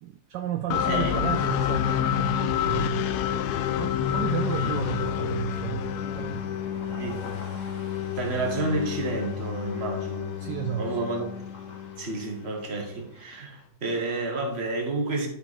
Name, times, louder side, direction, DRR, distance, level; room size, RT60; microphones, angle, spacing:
voice 1, 0.0-3.2 3.7-6.5 6.8-7.2 7.7-7.8 10.4-11.0, right 10 dB, 75° right, 1.1 m, -33 dB
sound 1, 0.7-12.5, left 10 dB, 70° left, 1.0 m, -29 dB
voice 2, 0.8-1.2 4.6-4.8 6.9-7.2 8.2-10.4 10.8-11.3 12.0-15.3, right 2 dB, 35° right, 1.6 m, -30 dB
sound 2, 4.8-13.7, left 3 dB, 45° left, 1.3 m, -48 dB
11.0 x 5.6 x 4.1 m
omnidirectional pair, 2.1 m